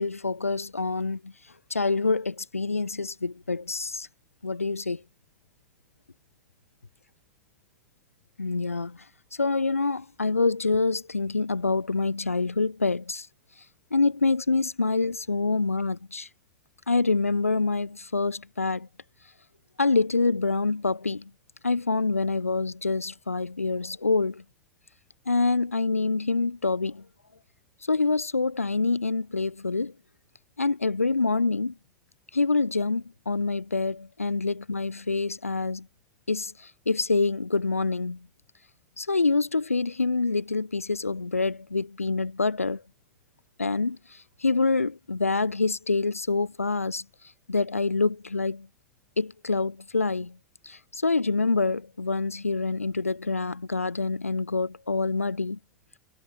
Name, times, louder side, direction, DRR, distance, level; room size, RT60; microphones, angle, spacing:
voice 1, 0.0-1.3 1.7-4.1 4.4-5.0 8.4-9.0 9.3-13.3 13.9-16.3 16.9-18.9 19.8-21.3 21.6-24.4 25.3-27.1 27.9-29.9 30.6-31.8 32.3-35.9 36.3-38.3 39.0-42.8 43.6-47.0 47.5-48.7 49.2-50.4 50.6-55.6, left 3 dB, 85° left, 2.4 m, -26 dB
figure-of-eight pair, 80°, 7 cm